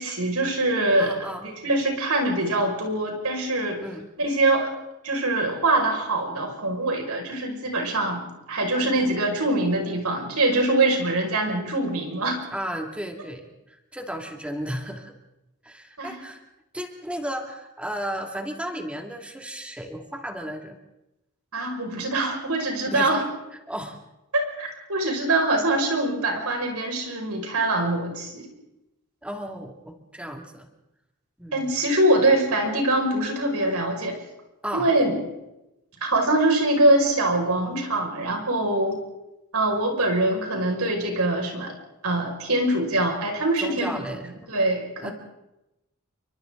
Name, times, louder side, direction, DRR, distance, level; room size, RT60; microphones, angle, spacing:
voice 1, 0.0-1.1 1.6-3.8 4.2-4.7 5.0-12.4 16.0-16.1 21.5-23.2 24.3-28.5 31.5-34.2 34.7-35.2 36.0-39.0 39.5-41.7 42.0-43.9 44.5-45.1, right 2 dB, 80° right, 2 dB, 5.5 m, -23 dB
voice 2, 1.0-1.5 3.8-4.1 8.8-9.0 12.5-15.1 15.6-16.4 16.7-20.8 22.9-23.2 23.7-24.0 29.2-30.7 31.4-31.7 34.6-34.9 43.6-44.3 45.0-45.1, equal, 5° right, 3 dB, 2.2 m, -34 dB
30.0 x 23.5 x 3.8 m, 0.93 s
head